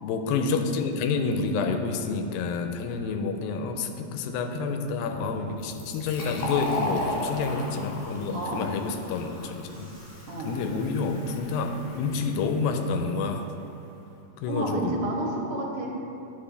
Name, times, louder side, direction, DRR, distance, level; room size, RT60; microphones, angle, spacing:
voice 1, 0.0-9.9 10.5-13.5 14.4-15.0, left 4 dB, 85° left, 6 dB, 2.4 m, -28 dB
Bus / Engine, 5.0-13.0, equal, 30° right, 1.7 m, -50 dB
Fill (with liquid), 5.6-13.0, left 2 dB, 65° left, 2.8 m, -36 dB
voice 2, 8.3-8.6 10.3-10.5 14.5-15.9, right 2 dB, 75° right, -1 dB, 2.4 m, -30 dB
10.5 x 5.3 x 3.3 m, 2.8 s
omnidirectional pair, 4.1 m